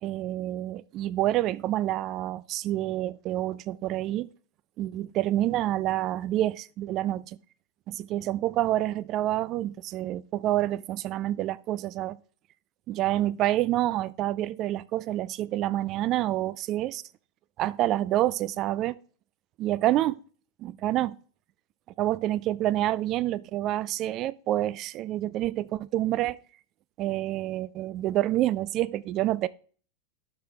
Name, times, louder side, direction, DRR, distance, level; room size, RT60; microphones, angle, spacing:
voice 1, 0.0-4.3 4.8-7.4 7.9-12.2 12.9-17.0 17.6-19.0 19.6-20.2 20.6-21.2 22.0-26.4 27.0-29.5, right 14 dB, 35° right, 0.4 m, -28 dB
12.0 x 6.2 x 3.3 m
figure-of-eight pair, 90°, 0 cm